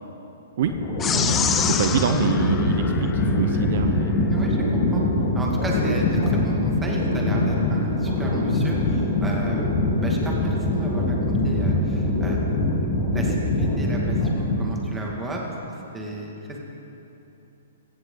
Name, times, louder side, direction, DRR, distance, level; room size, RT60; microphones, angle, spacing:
sound 1, 0.6-14.9, left 1 dB, 40° left, 3.2 m, -23 dB
sound 2, 1.0-3.7, left 8 dB, 15° left, 0.4 m, -27 dB
voice 1, 1.1-4.2, right 8 dB, 55° right, 7 dB, 0.7 m, -26 dB
voice 2, 4.3-4.7 4.9-5.0 5.3-12.5 13.1-15.4 15.9-16.6, right 1 dB, 10° right, -2 dB, 1.9 m, -33 dB
16.0 x 15.5 x 3.8 m, 2.9 s
hypercardioid pair, 155°, 0 cm